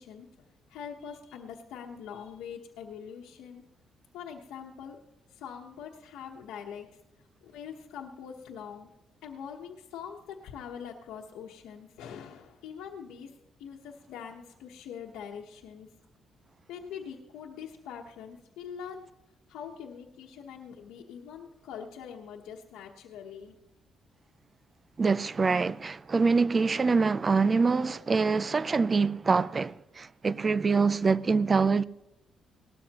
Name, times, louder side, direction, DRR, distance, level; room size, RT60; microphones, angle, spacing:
voice 1, 0.0-3.6 4.1-5.0 5.3-6.9 7.4-8.9 9.2-13.3 13.6-15.9 16.7-19.0 19.5-23.5, left 7 dB, 90° left, 1.1 m, -43 dB
voice 2, 25.0-31.8, right 4 dB, 35° right, 0.4 m, -25 dB
18.5 x 13.0 x 3.0 m
cardioid pair, 90°, 0 cm